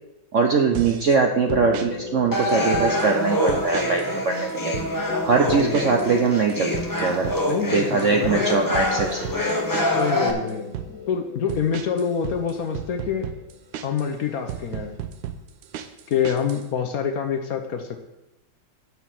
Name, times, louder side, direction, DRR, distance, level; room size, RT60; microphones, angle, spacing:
voice 1, 0.3-4.7 5.2-6.7 7.0-7.3 7.6-9.2, right 5 dB, 65° right, 3 dB, 0.7 m, -22 dB
sound 1, 0.7-1.2 1.5-1.9 2.5-3.1 3.5-4.1 4.4-4.9 5.5-6.1 6.4-10.1 10.5-10.9 11.5-14.1 14.5-16.6, right 10 dB, 85° right, 1.4 m, -34 dB
sound 2, 1.3-13.5 13.7-13.8, left 5 dB, 85° left, 1.6 m, -36 dB
sound 3, 2.3-10.3, left 1 dB, 25° left, 0.4 m, -25 dB
voice 2, 5.4-6.3 7.5-8.5 9.9-13.3 13.8-14.9 16.1-18.0, left 7 dB, 60° left, 5 dB, 1.1 m, -27 dB
6.9 x 6.1 x 7.6 m, 0.96 s
omnidirectional pair, 2.0 m